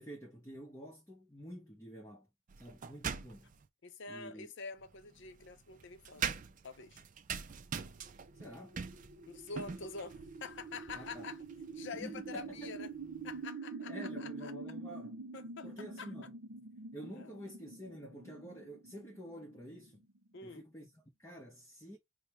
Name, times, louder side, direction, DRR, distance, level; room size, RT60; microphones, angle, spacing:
voice 1, 0.0-2.3 2.6-3.5 4.1-4.5 8.3-8.8 10.9-11.3 11.9-12.7 13.8-15.2 15.6-16.4 16.9-20.1 20.4-22.0, equal, 15° left, 0.8 m, -49 dB
sound 1, 2.5-3.7 4.8-13.5, right 7 dB, 35° right, 0.3 m, -44 dB
voice 2, 3.8-6.3 6.6-7.0 9.3-11.4 11.7-12.9 13.2-14.5 15.3-15.7 16.0-16.1 17.2-17.3 20.3-20.6, left 4 dB, 55° left, 0.6 m, -46 dB
sound 2, 8.3-20.4, right 4 dB, 60° right, 0.8 m, -47 dB
5.1 x 2.1 x 2.9 m
head